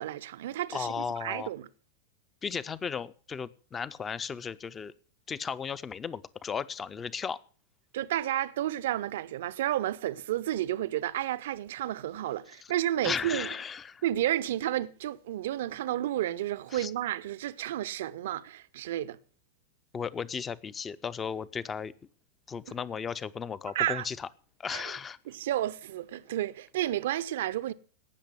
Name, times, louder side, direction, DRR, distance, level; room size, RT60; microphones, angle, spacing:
voice 1, 0.0-1.7 7.9-13.5 14.0-19.2 23.7-24.1 24.7-24.8 25.3-27.7, right 13 dB, 55° right, 0.6 m, -31 dB
voice 2, 0.7-1.5 2.4-4.9 5.3-7.4 12.6-12.7 13.0-14.0 16.7-16.9 19.9-21.9 22.5-24.3 24.6-25.2, left 6 dB, 20° left, 0.7 m, -35 dB
17.5 x 6.7 x 7.8 m
figure-of-eight pair, 90°, 0 cm